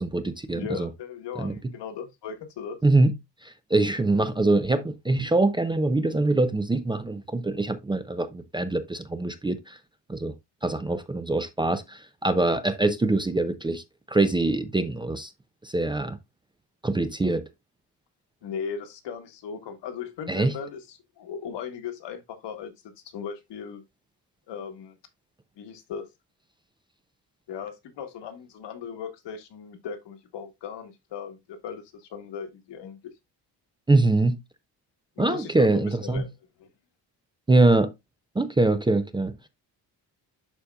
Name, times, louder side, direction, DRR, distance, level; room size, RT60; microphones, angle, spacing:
voice 1, 0.0-0.9 1.4-1.5 2.8-3.1 3.4-9.8 10.1-10.3 10.6-15.3 15.6-16.2 16.8-17.4 20.3-20.6 33.9-34.4 35.2-36.3 37.5-37.9 38.4-39.3, right 2 dB, 10° right, 0.4 m, -23 dB
voice 2, 0.5-2.8 18.4-22.7 23.1-23.8 24.5-25.0 25.6-26.1 27.5-33.0 35.2-36.3 36.6-36.7, left 7 dB, 85° left, 1.6 m, -37 dB
11.5 x 4.2 x 2.3 m
cardioid pair, 150°, 41 cm